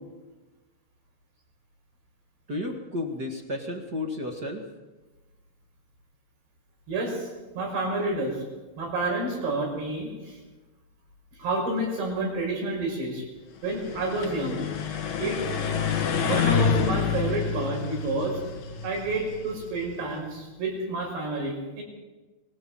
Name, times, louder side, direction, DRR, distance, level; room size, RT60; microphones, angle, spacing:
voice 1, 2.5-4.6, left 2 dB, 40° right, 2 dB, 1.4 m, -32 dB
voice 2, 6.9-8.4 8.8-10.4 11.4-13.2 13.6-14.6 15.2-15.4 16.2-18.4 18.8-21.8, right 2 dB, 80° right, 1 dB, 7.8 m, -29 dB
sound 1, 13.7-19.8, left 6 dB, 55° left, 2.9 m, -28 dB
23.0 x 15.0 x 7.6 m, 1.2 s
omnidirectional pair, 4.7 m